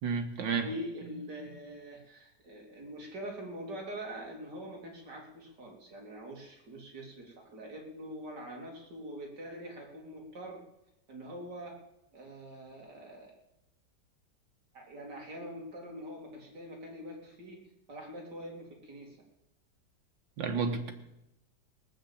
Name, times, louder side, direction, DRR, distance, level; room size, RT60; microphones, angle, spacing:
voice 1, 0.0-0.7 20.4-20.9, right 5 dB, 90° right, 6 dB, 2.1 m, -31 dB
voice 2, 0.6-10.6 11.1-11.8 12.1-13.4 14.7-17.6 17.9-19.2, equal, 70° right, 0 dB, 3.2 m, -44 dB
18.5 x 7.1 x 8.6 m, 0.88 s
omnidirectional pair, 1.9 m